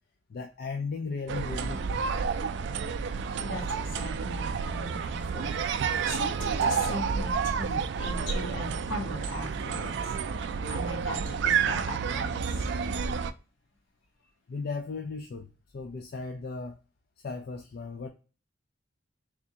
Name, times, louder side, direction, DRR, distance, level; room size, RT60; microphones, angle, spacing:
voice 1, 0.3-2.1 9.8-9.9 14.5-15.5 15.7-16.8 17.2-18.1, left 4 dB, 55° left, 5 dB, 0.4 m, -36 dB
sound 1, 1.3-13.3, right 6 dB, 65° right, 0.3 m, -30 dB
voice 2, 3.4-10.0 10.3-12.6, left 1 dB, 75° left, 2 dB, 1.3 m, -39 dB
3.6 x 3.4 x 2.7 m, 0.34 s
head